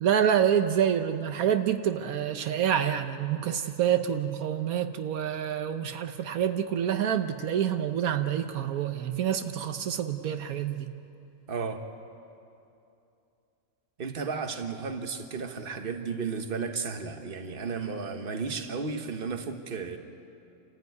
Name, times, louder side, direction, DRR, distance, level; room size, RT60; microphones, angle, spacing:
voice 1, 0.0-10.9, right 9 dB, 80° right, 8 dB, 1.3 m, -27 dB
voice 2, 11.5-11.8 14.0-20.0, right 5 dB, 40° right, 6 dB, 1.5 m, -33 dB
28.0 x 14.5 x 9.5 m, 2.7 s
omnidirectional pair, 1.5 m